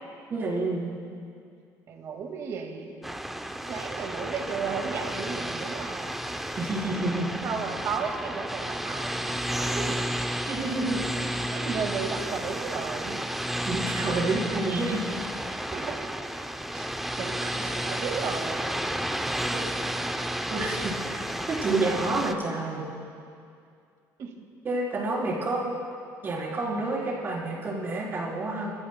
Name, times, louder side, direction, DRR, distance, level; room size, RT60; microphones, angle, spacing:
voice 1, 0.3-0.9 6.6-7.3 10.5-11.0 13.7-15.0 17.4-17.6 19.5-19.8 20.5-21.2 21.5-22.8 24.6-25.7 26.2-28.7, right 2 dB, 35° right, -4 dB, 3.8 m, -29 dB
voice 2, 1.9-2.9 3.7-6.1 7.0-10.2 11.2-13.2 15.7-16.1 16.7-18.8 24.2-24.5, right 5 dB, 50° right, 3 dB, 1.8 m, -34 dB
sound 1, 3.0-22.3, right 1 dB, 5° right, 0.5 m, -32 dB
29.0 x 14.0 x 2.2 m, 2.4 s
cardioid pair, 135°, 7 cm